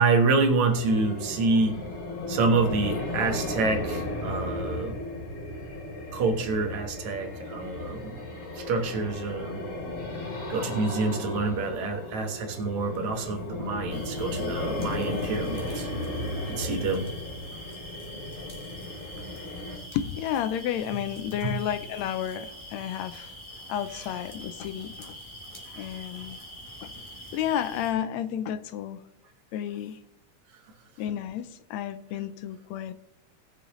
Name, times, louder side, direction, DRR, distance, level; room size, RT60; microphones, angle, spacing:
voice 1, 0.0-1.8 2.3-4.9 6.1-8.2 8.6-9.7 10.5-15.9 16.5-17.1 17.5-17.6 21.4-21.6 25.7-26.0, right 3 dB, 75° right, 4 dB, 2.6 m, -27 dB
sound 1, 0.7-19.8, left 1 dB, 50° left, 3.2 m, -35 dB
sound 2, 13.9-27.9, equal, 10° left, 1.6 m, -44 dB
voice 2, 19.9-23.4 23.7-25.1 25.8-26.4 26.8-26.9 27.3-29.0 29.5-30.0 31.0-32.9, left 10 dB, 80° left, 12 dB, 1.7 m, -31 dB
18.5 x 6.7 x 3.0 m, 0.78 s
omnidirectional pair, 3.3 m